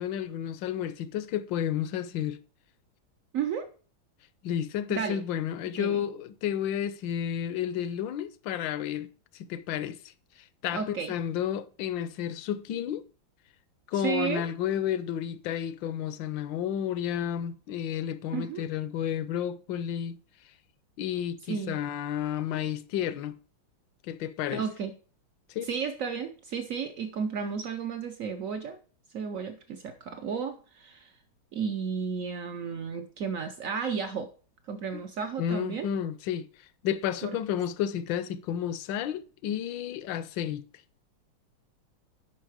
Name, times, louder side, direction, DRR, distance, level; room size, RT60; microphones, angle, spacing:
voice 1, 0.0-2.4 4.4-9.1 9.3-10.0 10.6-13.0 13.9-20.2 21.0-23.4 24.0-24.6 25.5-25.7 34.9-35.0 35.4-36.5 36.8-40.6, left 10 dB, 75° left, 1.2 m, -31 dB
voice 2, 3.3-3.7 4.9-5.2 5.8-6.0 10.7-11.1 13.9-14.5 18.3-18.7 21.5-21.8 24.5-24.9 25.6-28.8 29.1-31.1 31.5-34.3 34.7-35.9 37.2-37.4, right 6 dB, 75° right, 0.7 m, -33 dB
10.0 x 5.5 x 4.8 m
omnidirectional pair, 2.3 m